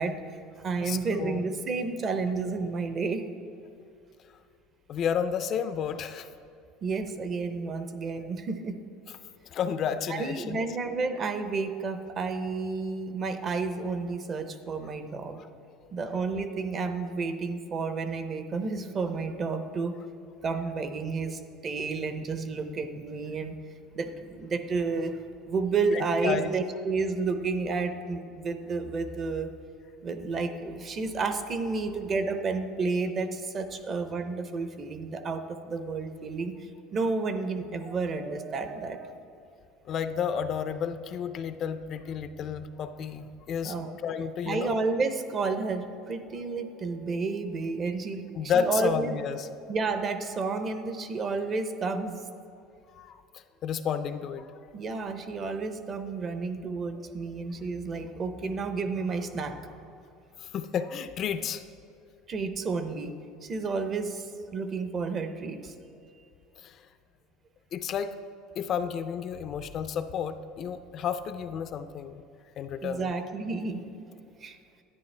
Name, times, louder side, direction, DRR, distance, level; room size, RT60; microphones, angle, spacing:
voice 1, 0.0-3.3 6.8-8.8 10.1-15.4 15.9-19.9 20.4-23.6 23.9-25.2 25.5-29.5 30.0-39.2 43.6-44.0 44.5-49.2 49.7-52.2 54.7-59.8 62.3-63.1 63.4-65.7 66.2-66.3 72.8-73.8 74.4-74.6, right 4 dB, 30° right, 9 dB, 0.6 m, -31 dB
voice 2, 0.8-1.4 4.9-6.3 9.5-10.6 25.9-26.5 39.9-43.7 44.0-44.8 48.4-49.5 52.9-54.5 60.4-61.6 66.6-66.8 67.7-68.1 68.6-72.2 72.6-73.1, left 7 dB, 40° left, 10 dB, 0.3 m, -31 dB
10.5 x 9.2 x 3.2 m, 2.5 s
cardioid pair, 150°, 0 cm